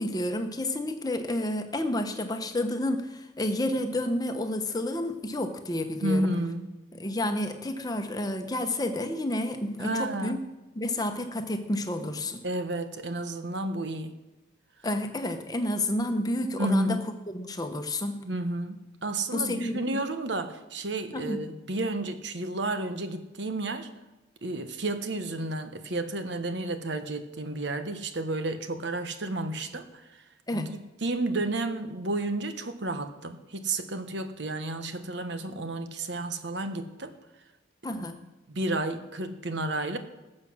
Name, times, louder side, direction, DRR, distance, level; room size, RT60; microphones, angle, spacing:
voice 1, 0.0-6.3 6.9-10.4 10.7-12.4 14.8-17.0 17.3-18.2 19.3-20.0 21.1-21.4 30.5-30.7 37.8-38.2, left 1 dB, 20° left, 6 dB, 1.0 m, -30 dB
voice 2, 6.0-6.7 9.8-10.4 12.4-14.1 16.5-17.0 18.2-23.9 24.4-30.2 30.5-37.2 38.0-38.1 38.5-40.0, right 2 dB, 65° right, 9 dB, 1.1 m, -31 dB
19.5 x 7.7 x 6.3 m, 1.0 s
head